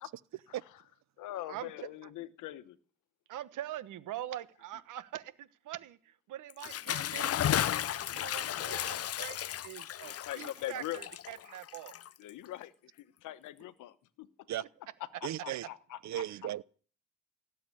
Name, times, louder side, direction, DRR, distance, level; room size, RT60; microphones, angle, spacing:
voice 1, 1.2-2.8 10.0-11.0 12.2-14.3 15.2-16.2, left 14 dB, 85° left, 1.1 m, -42 dB
voice 2, 3.3-12.0, right 12 dB, 85° right, 1.3 m, -44 dB
Bathtub (filling or washing) / Splash splatter, 6.5-12.4, left 11 dB, 55° left, 0.7 m, -34 dB
voice 3, 15.2-15.7 16.0-16.6, right 13 dB, 65° right, 0.7 m, -36 dB
17.0 x 7.7 x 9.9 m
cardioid pair, 90°, 30 cm